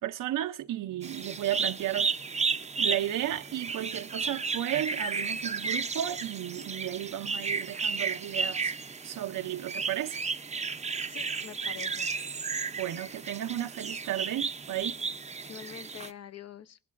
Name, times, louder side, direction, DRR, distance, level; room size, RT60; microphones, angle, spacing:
voice 1, 0.0-8.7 9.0-10.2 12.8-15.0, right 12 dB, 80° right, 0.6 m, -34 dB
sound 1, 1.0-16.1, right 4 dB, 20° right, 0.5 m, -33 dB
voice 2, 11.1-12.1 15.4-16.8, left 9 dB, 50° left, 0.7 m, -45 dB
21.0 x 12.0 x 2.4 m
wide cardioid pair, 115°, 32 cm